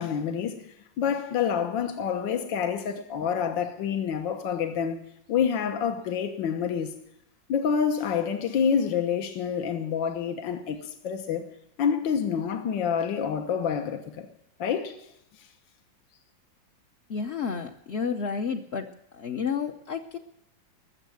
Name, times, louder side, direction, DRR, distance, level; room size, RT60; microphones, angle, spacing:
voice 1, 0.0-5.0 5.3-6.9 7.5-11.5 11.8-14.3 14.6-15.0 15.4-15.5, left 7 dB, 75° left, 1.8 m, -27 dB
voice 2, 17.1-18.9 19.1-20.2, left 6 dB, 50° left, 0.8 m, -31 dB
20.5 x 7.4 x 9.2 m
omnidirectional pair, 2.1 m